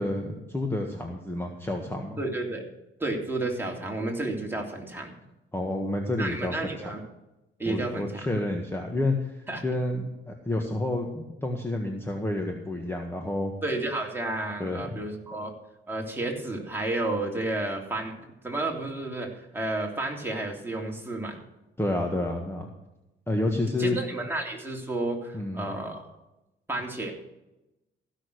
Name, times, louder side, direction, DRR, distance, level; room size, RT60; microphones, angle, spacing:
voice 1, 0.0-2.2 5.5-6.9 7.6-13.5 14.6-14.8 21.8-22.7 23.3-24.0 25.3-25.7, left 1 dB, 10° left, 2 dB, 1.7 m, -29 dB
voice 2, 2.2-2.6 3.0-5.1 6.2-7.0 7.6-8.3 9.5-9.6 13.6-15.5 15.9-18.1 18.4-21.4 23.8-26.1 26.7-27.1, right 2 dB, 10° right, 0 dB, 3.2 m, -31 dB
15.5 x 6.5 x 6.5 m, 0.95 s
cardioid pair, 90°, 20 cm